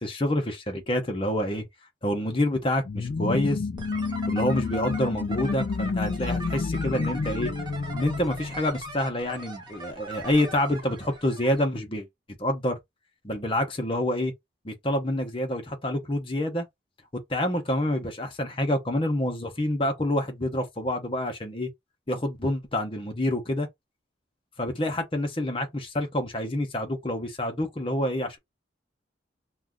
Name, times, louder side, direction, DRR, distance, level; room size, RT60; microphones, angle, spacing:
voice 1, 0.0-1.6 2.0-3.6 4.3-7.5 7.9-12.1 12.4-12.8 13.2-14.3 14.6-16.7 17.3-21.7 22.1-23.7 24.6-28.4, left 1 dB, 30° left, 0.8 m, -27 dB
sound 1, 2.8-9.3, left 4 dB, 45° left, 0.3 m, -30 dB
sound 2, 3.8-11.7, right 1 dB, 25° right, 0.7 m, -40 dB
2.6 x 2.3 x 3.6 m
head